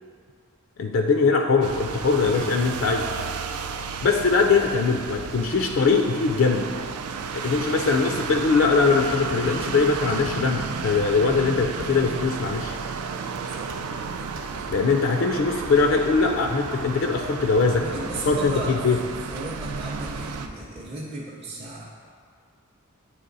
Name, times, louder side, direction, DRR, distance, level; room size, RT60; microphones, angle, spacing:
voice 1, 0.8-3.0 4.0-6.7 7.3-12.8 14.7-17.8 18.3-18.5 18.8-19.0, left 4 dB, 60° left, 3 dB, 0.4 m, -21 dB
sound 1, 1.6-20.5, right 5 dB, 85° right, 0.4 m, -33 dB
sound 2, 9.3-11.9 13.1-13.8 14.2-15.0 15.4-20.9, equal, 60° right, 0.8 m, -44 dB
voice 2, 17.8-21.9, right 2 dB, 25° right, -6 dB, 0.6 m, -36 dB
9.1 x 3.3 x 3.9 m, 2.1 s
head